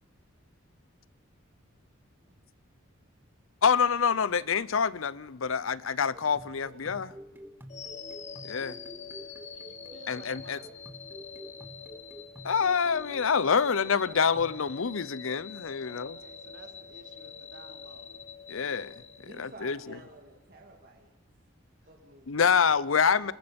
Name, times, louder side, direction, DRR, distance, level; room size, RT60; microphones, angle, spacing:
voice 1, 3.6-7.1 8.4-8.8 10.1-10.6 12.4-16.2 18.5-19.0 19.4-19.8 22.3-23.3, left 6 dB, 85° left, 0.7 m, -26 dB
sound 1, 6.1-14.6, equal, 10° right, 1.0 m, -49 dB
voice 2, 6.6-7.2 9.5-10.8 15.8-18.2 19.3-19.8, right 3 dB, 75° right, 3.2 m, -54 dB
sound 2, 7.7-19.8, left 6 dB, 35° left, 1.2 m, -45 dB
voice 3, 19.2-21.1 21.9-22.6, right 1 dB, 45° right, 2.5 m, -51 dB
27.5 x 20.0 x 5.3 m
head